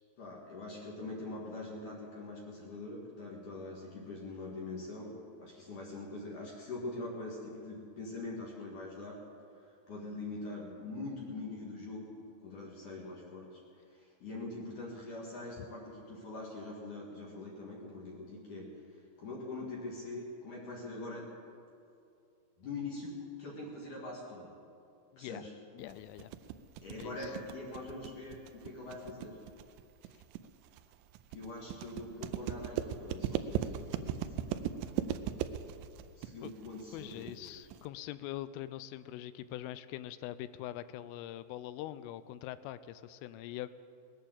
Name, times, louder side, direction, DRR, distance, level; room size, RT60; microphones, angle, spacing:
voice 1, 0.2-9.2 9.9-12.1 12.4-13.6 13.9-18.7 19.2-21.3 22.6-24.6 25.2-25.5 26.8-29.4 31.3-34.6 36.2-37.5, left 2 dB, 50° left, -3 dB, 2.7 m, -43 dB
voice 2, 25.1-25.4 25.7-26.3 27.0-27.3 36.4-36.5 36.9-43.7, left 13 dB, 85° left, 14 dB, 3.1 m, -43 dB
sound 1, 25.9-37.9, right 10 dB, 85° right, 2.6 m, -38 dB
20.0 x 8.9 x 7.7 m, 2.5 s
omnidirectional pair, 5.7 m